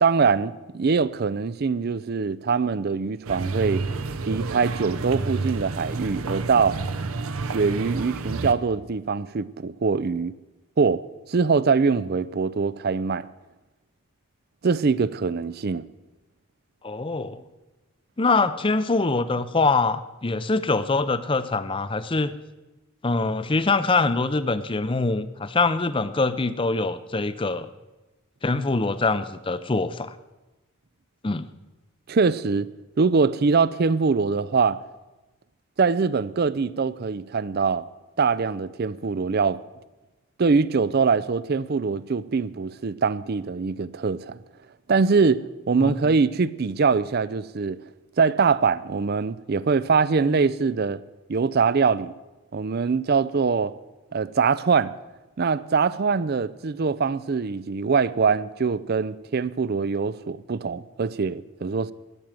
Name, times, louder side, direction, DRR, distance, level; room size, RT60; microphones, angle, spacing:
voice 1, 0.0-3.8 4.2-6.8 7.5-10.3 10.8-11.0 11.3-13.3 14.6-15.9 32.1-32.7 33.0-34.8 35.8-37.8 38.2-39.6 40.4-44.4 44.9-47.8 48.2-51.0 51.3-52.1 52.5-53.7 54.1-54.9 55.4-61.9, right 5 dB, 45° right, 0.4 m, -23 dB
sound 1, 3.2-8.5, right 3 dB, 75° right, 0.8 m, -30 dB
voice 2, 16.8-17.4 18.2-22.3 23.0-27.7 28.4-30.1 31.2-31.5 45.8-45.9, left 3 dB, 25° left, 0.5 m, -24 dB
13.5 x 9.4 x 7.5 m
head